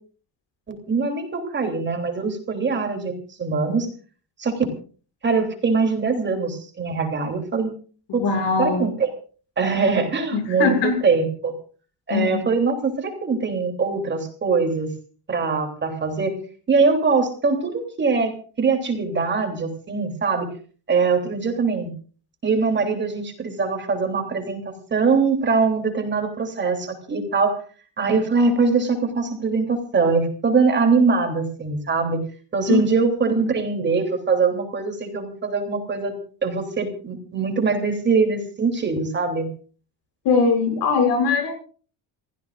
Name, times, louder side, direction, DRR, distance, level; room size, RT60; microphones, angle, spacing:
voice 1, 0.7-3.9 4.4-4.7 5.2-7.7 8.1-8.2 8.6-9.1 9.6-10.7 11.0-11.5 12.1-14.9 15.3-16.3 16.7-20.5 20.9-21.9 22.4-27.6 28.0-32.2 32.5-36.1 36.4-39.5, right 4 dB, 25° right, 4 dB, 3.2 m, -22 dB
voice 2, 8.1-8.9 10.3-11.0 12.1-12.3 32.7-32.8 33.4-33.5 40.2-41.5, left 5 dB, 80° left, 5 dB, 6.7 m, -20 dB
28.5 x 15.5 x 2.5 m, 0.41 s
cardioid pair, 170°, 41 cm